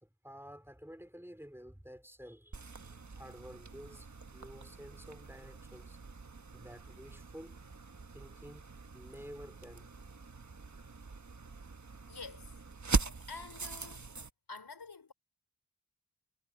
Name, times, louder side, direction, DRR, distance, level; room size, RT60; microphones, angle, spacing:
voice 1, 0.0-6.0 6.5-7.6 8.1-9.9, equal, 5° right, 3.3 m, -51 dB
sound 1, 2.5-14.3, right 4 dB, 45° right, 1.3 m, -41 dB
voice 2, 12.1-12.5 12.9-14.1 14.5-15.1, left 4 dB, 85° left, 5.6 m, -48 dB
wide cardioid pair, 65°, 38 cm